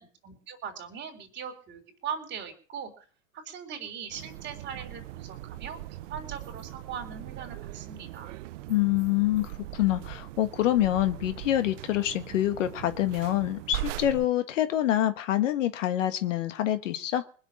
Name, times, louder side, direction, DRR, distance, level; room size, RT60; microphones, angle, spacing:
voice 1, 0.0-3.0 3.3-8.3, right 7 dB, 30° right, 4.0 m, -40 dB
sound 1, 4.1-14.3, right 15 dB, 65° right, 0.9 m, -40 dB
voice 2, 8.7-17.2, left 13 dB, 70° left, 1.6 m, -26 dB
20.0 x 6.7 x 8.9 m
hypercardioid pair, 125°, 39 cm